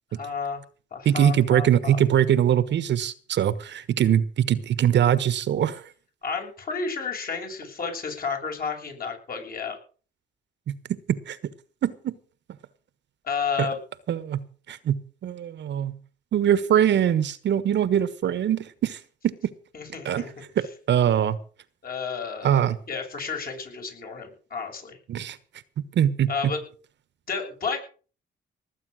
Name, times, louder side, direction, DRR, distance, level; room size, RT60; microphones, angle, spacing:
voice 1, 0.1-0.6 0.9-2.0 6.2-9.8 13.2-13.8 19.7-20.3 21.8-25.0 26.3-26.6 27.3-27.8, left 5 dB, 45° left, 3 dB, 6.8 m, -31 dB
voice 2, 1.0-5.8 10.7-10.8 11.1-11.4 11.8-12.1 13.6-13.7 14.1-14.4 14.7-16.0 16.3-19.4 20.0-20.3 20.9-21.4 22.4-22.8 25.1-25.4 25.9-26.3, right 10 dB, 65° right, 16 dB, 1.3 m, -22 dB
19.0 x 8.6 x 6.4 m, 0.40 s
cardioid pair, 90°, 20 cm